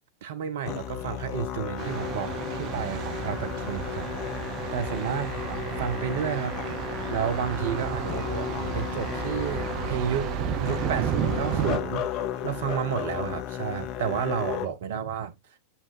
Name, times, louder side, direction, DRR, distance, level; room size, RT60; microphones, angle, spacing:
voice 1, 0.2-4.1 4.7-6.6 7.1-10.3 10.6-12.0 12.4-15.3, right 8 dB, 55° right, 1.0 m, -31 dB
Musical instrument, 0.6-14.7, left 10 dB, 40° left, 0.7 m, -34 dB
Thunder, 1.8-11.8, right 10 dB, 40° right, 0.5 m, -32 dB
7.0 x 5.8 x 2.4 m
figure-of-eight pair, 90°, 0 cm